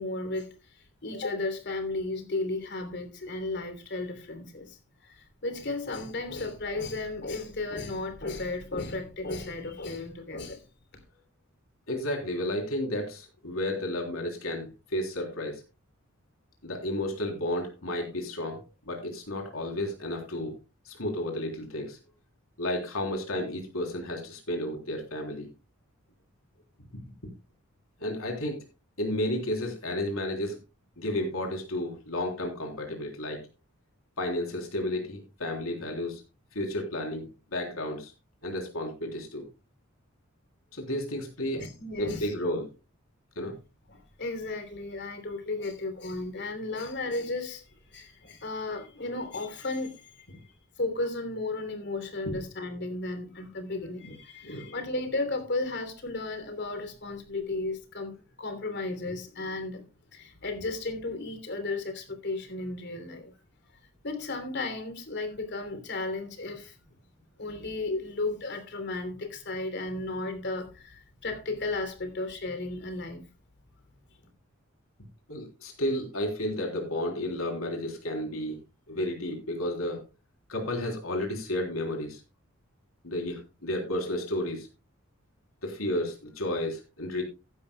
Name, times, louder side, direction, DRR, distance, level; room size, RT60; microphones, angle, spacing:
voice 1, 0.0-10.6 41.5-42.3 43.9-59.8 60.1-63.3 64.0-66.8 67.4-73.2, left 2 dB, 55° left, 3.2 m, -34 dB
voice 2, 11.9-15.6 16.6-20.5 20.8-22.0 22.6-25.5 28.0-28.6 29.0-30.6 31.0-33.4 34.2-36.2 36.5-38.1 38.4-39.4 40.7-41.6 42.0-42.6 43.3-43.5 52.3-52.4 54.0-54.1 54.4-54.8 75.3-78.6 78.9-80.0 80.5-82.2 83.0-84.7 85.6-87.2, left 1 dB, 85° left, 3.4 m, -32 dB
15.5 x 11.5 x 2.2 m
head